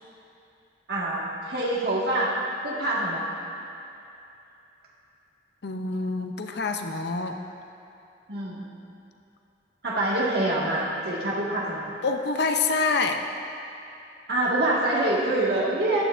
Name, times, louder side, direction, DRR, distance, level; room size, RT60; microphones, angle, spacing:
voice 1, 0.9-2.4 2.6-3.2 8.3-8.7 9.8-11.8 14.3-16.0, right 1 dB, 60° right, -5 dB, 1.6 m, -25 dB
voice 2, 5.6-7.4 12.0-13.2, left 4 dB, 60° left, 5 dB, 0.6 m, -26 dB
14.0 x 9.2 x 2.5 m, 2.8 s
head